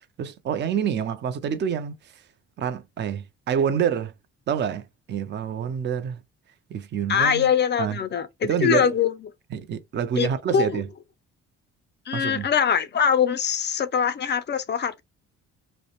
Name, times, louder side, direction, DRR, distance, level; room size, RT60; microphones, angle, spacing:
voice 1, 0.2-1.9 2.6-4.1 4.5-6.2 6.7-7.5 7.8-8.0 8.4-8.9 9.5-10.9 12.1-12.5, right 8 dB, 35° right, 0.4 m, -27 dB
voice 2, 7.1-9.1 10.2-10.8 12.1-15.0, left 7 dB, 35° left, 0.4 m, -23 dB
2.5 x 2.1 x 2.8 m
cardioid pair, 90°, 30 cm